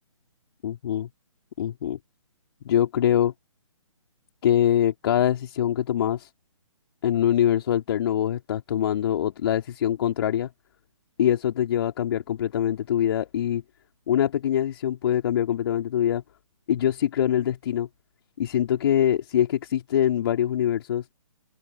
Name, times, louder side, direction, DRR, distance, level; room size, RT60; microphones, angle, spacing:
voice 1, 0.6-1.1 1.6-2.0 2.7-3.3 4.4-6.3 7.0-10.5 11.2-13.6 14.1-16.2 16.7-17.9 18.4-21.0, left 10 dB, 45° left, 3.4 m, -24 dB
figure-of-eight pair, 135°, 17 cm